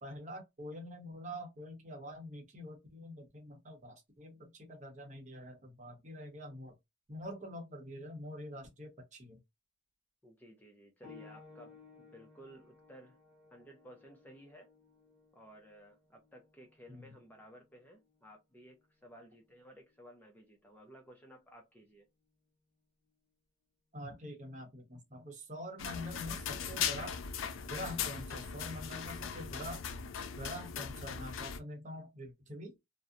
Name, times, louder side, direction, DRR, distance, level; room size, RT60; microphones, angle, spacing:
voice 1, 0.0-6.7 7.1-9.4 16.9-17.1 23.9-27.2 27.6-29.9 30.4-32.7, equal, 40° right, 0.8 m, -45 dB
voice 2, 10.2-13.2 13.5-14.7 15.3-22.1, equal, 10° left, 0.4 m, -56 dB
sound 1, 11.0-21.3 22.2-22.3 23.1-23.2, left 4 dB, 10° right, 1.2 m, -60 dB
sound 2, 25.8-31.6, left 7 dB, 75° left, 0.4 m, -39 dB
2.6 x 2.0 x 2.4 m
head